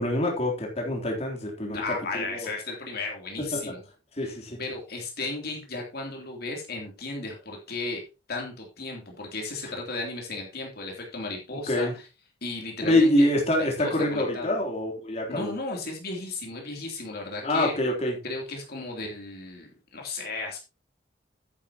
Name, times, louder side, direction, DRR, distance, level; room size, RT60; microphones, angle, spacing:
voice 1, 0.0-2.5 3.5-3.7 4.2-4.6 11.5-11.9 12.8-15.5 17.4-18.1, left 1 dB, 35° left, 0 dB, 3.4 m, -25 dB
voice 2, 1.7-3.8 4.2-8.0 8.3-12.0 12.4-13.3 13.6-14.5 15.3-17.7 18.2-20.6, left 3 dB, 55° left, 0 dB, 3.1 m, -35 dB
11.0 x 9.8 x 2.9 m, 0.29 s
head